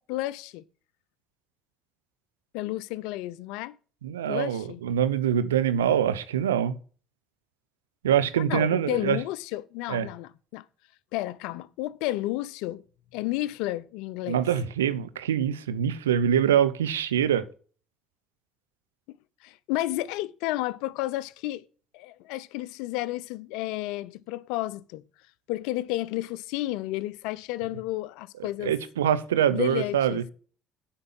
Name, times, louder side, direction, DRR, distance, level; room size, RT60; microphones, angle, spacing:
voice 1, 0.1-0.6 2.5-3.8 4.3-4.8 8.5-10.6 11.1-12.8 13.1-14.4 19.1-21.7 21.9-25.0 25.5-28.7 29.5-30.2, left 16 dB, 75° left, 0.5 m, -32 dB
voice 2, 4.0-6.8 8.0-9.2 9.9-10.1 14.3-17.4 28.6-30.2, right 9 dB, 90° right, 0.6 m, -24 dB
8.6 x 5.4 x 7.1 m
hypercardioid pair, 55°, 0 cm